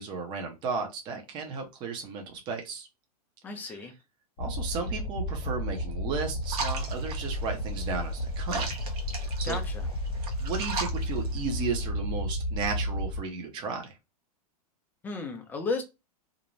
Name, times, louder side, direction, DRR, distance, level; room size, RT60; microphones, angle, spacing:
voice 1, 0.0-2.9 3.5-3.9 4.4-8.7 9.4-9.6 10.4-13.9, right 5 dB, 25° right, 0.6 m, -34 dB
voice 2, 3.4-3.9 9.4-9.9 15.0-15.8, left 4 dB, 10° left, 0.4 m, -33 dB
sound 1, 4.4-13.2, equal, 55° left, 0.8 m, -32 dB
sound 2, 6.4-11.8, right 4 dB, 70° right, 0.9 m, -38 dB
2.5 x 2.1 x 2.9 m
supercardioid pair, 160°, 20 cm